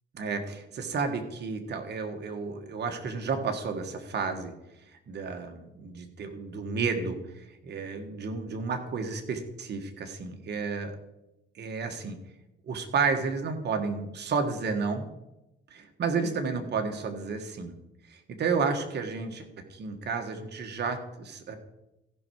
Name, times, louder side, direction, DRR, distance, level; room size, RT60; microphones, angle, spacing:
voice 1, 0.1-4.5 5.1-10.9 11.6-12.2 12.7-15.1 15.7-17.7 18.1-19.4 19.7-21.6, right 5 dB, 60° right, 5 dB, 1.6 m, -31 dB
15.0 x 5.7 x 4.7 m, 0.91 s
cardioid pair, 90°, 20 cm